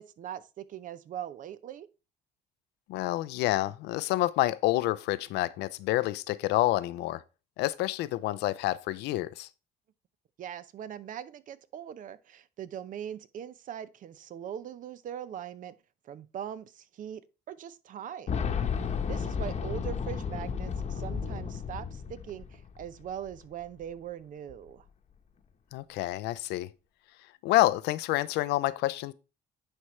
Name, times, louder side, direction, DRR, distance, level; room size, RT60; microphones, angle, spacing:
voice 1, 0.0-1.9 10.4-15.7 16.0-18.4 18.8-24.9, right 9 dB, 50° right, 0.6 m, -41 dB
voice 2, 2.9-7.2 7.6-9.5 25.7-26.7 27.4-29.1, left 16 dB, 85° left, 0.5 m, -28 dB
Boom, 18.3-23.0 23.3-23.4 24.5-24.6, left 6 dB, 40° left, 1.0 m, -33 dB
9.8 x 4.4 x 3.1 m
cardioid pair, 110°, 17 cm